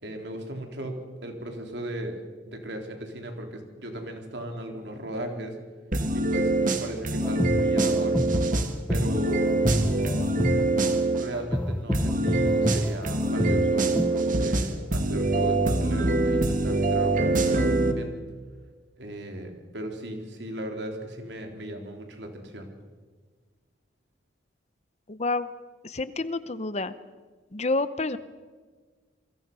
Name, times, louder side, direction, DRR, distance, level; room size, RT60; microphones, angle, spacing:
voice 1, 0.0-2.2 2.5-5.6 6.1-8.2 8.9-9.6 11.1-18.1 19.0-22.7, right 1 dB, 65° right, 3 dB, 3.9 m, -36 dB
sound 1, 5.9-11.3 11.9-17.9, right 2 dB, 45° right, 2.0 m, -24 dB
sound 2, 7.2-14.2, equal, 5° left, 0.8 m, -29 dB
voice 2, 25.1-25.5 25.8-26.9 27.5-28.2, left 3 dB, 35° left, 14 dB, 0.8 m, -28 dB
28.0 x 23.5 x 5.6 m, 1.5 s
head